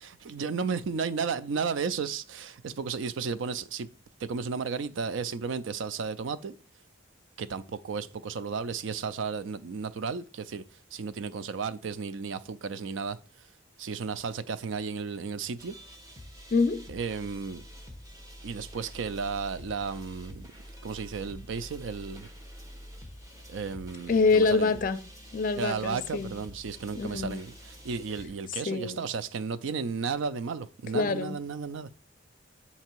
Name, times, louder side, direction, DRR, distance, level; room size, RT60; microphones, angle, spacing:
voice 1, 0.0-3.9 4.2-6.6 7.4-10.6 10.9-13.2 13.8-15.7 16.9-17.6 18.4-20.5 20.8-22.3 23.5-24.7 25.5-31.9, right 5 dB, 85° right, 0.4 m, -33 dB
sound 1, 15.6-28.3, equal, 20° right, 1.0 m, -47 dB
voice 2, 16.5-16.8 24.1-25.0 25.3-26.3 27.0-27.4 28.6-29.0 30.9-31.4, left 4 dB, 45° left, 0.4 m, -25 dB
8.1 x 2.8 x 4.5 m
head